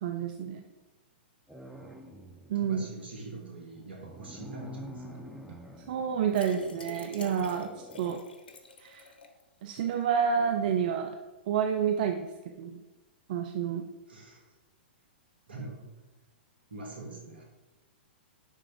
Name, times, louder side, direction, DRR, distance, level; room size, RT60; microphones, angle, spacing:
voice 1, 0.0-0.6 2.5-2.9 5.9-7.7 8.0-8.2 8.8-9.1 9.6-11.1 11.5-12.3 12.6-12.8 13.3-13.8, right 7 dB, 55° right, 4 dB, 0.7 m, -29 dB
sound 1, 1.5-2.6 3.7-8.2, equal, ahead, 0.9 m, -47 dB
voice 2, 2.5-5.2 14.1-14.4 15.5-15.9 16.7-17.4, right 3 dB, 80° right, -1 dB, 2.6 m, -43 dB
sound 2, 6.3-9.4 9.8-9.9 10.2-10.3, left 3 dB, 65° left, 1.1 m, -43 dB
10.0 x 3.7 x 5.1 m, 1.1 s
figure-of-eight pair, 110°, 6 cm